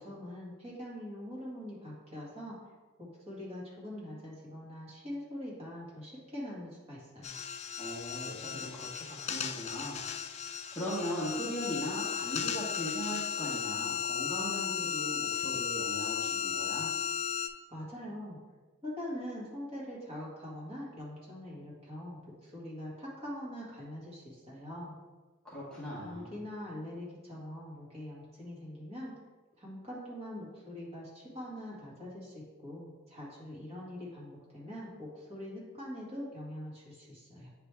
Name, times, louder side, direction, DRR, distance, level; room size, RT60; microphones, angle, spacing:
voice 1, 0.0-2.6 3.0-7.4 17.7-18.4 18.8-24.9 25.9-29.1 29.6-37.5, left 1 dB, 30° right, -6 dB, 1.9 m, -43 dB
sound 1, 7.2-17.5, left 7 dB, 30° left, 0.3 m, -35 dB
voice 2, 7.8-10.1 10.7-16.9 25.4-26.3, equal, 5° left, -9 dB, 1.3 m, -39 dB
9.1 x 3.3 x 3.4 m, 1.2 s
head